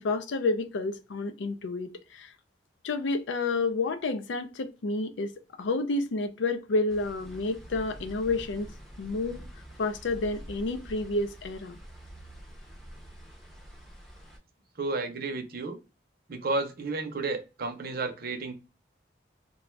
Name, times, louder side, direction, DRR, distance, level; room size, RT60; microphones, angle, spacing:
voice 1, 0.0-2.3 2.8-5.3 5.6-8.7 9.0-9.4 9.8-11.8, left 3 dB, 85° left, 0.4 m, -30 dB
sound 1, 6.9-14.4, equal, ahead, 0.5 m, -46 dB
voice 2, 14.8-15.8 16.3-18.5, right 3 dB, 55° right, 0.6 m, -32 dB
2.5 x 2.2 x 3.1 m
head